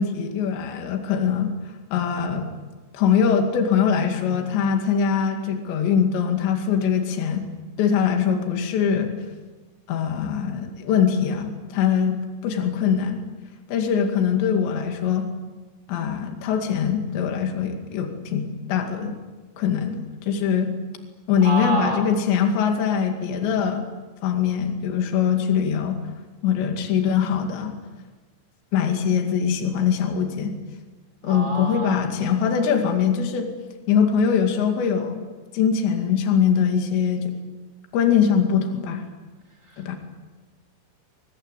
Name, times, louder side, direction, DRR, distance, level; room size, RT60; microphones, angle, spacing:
voice 1, 0.0-1.5 1.9-2.5 2.9-7.4 7.8-9.1 9.9-12.1 12.4-13.2 13.7-15.3 15.9-19.1 19.6-20.7 21.3-23.8 24.2-26.0 26.4-27.8 28.7-30.5 31.2-33.5 33.9-35.2 35.5-37.3 37.9-39.0 39.8-40.0, left 7 dB, 65° left, 4 dB, 4.4 m, -22 dB
voice 2, 21.4-22.0 31.2-32.1 39.6-39.9, right 3 dB, 15° right, 5 dB, 4.2 m, -28 dB
24.5 x 22.5 x 8.3 m, 1.3 s
omnidirectional pair, 5.7 m